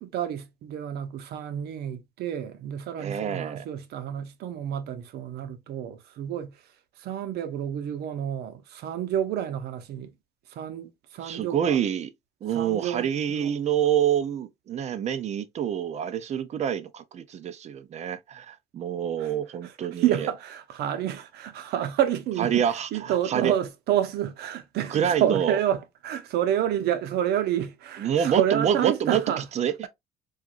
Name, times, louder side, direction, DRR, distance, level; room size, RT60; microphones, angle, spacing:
voice 1, 0.0-6.6 7.0-10.1 10.5-11.8 12.5-13.5 19.2-19.3 19.6-22.6 22.9-29.4, right 10 dB, 75° right, 0.7 m, -29 dB
voice 2, 3.0-3.7 11.2-12.1 12.4-20.3 22.4-23.5 24.9-25.6 28.0-29.2 29.6-29.9, right 9 dB, 40° right, 0.5 m, -27 dB
4.5 x 2.4 x 2.4 m
cardioid pair, 110°, 17 cm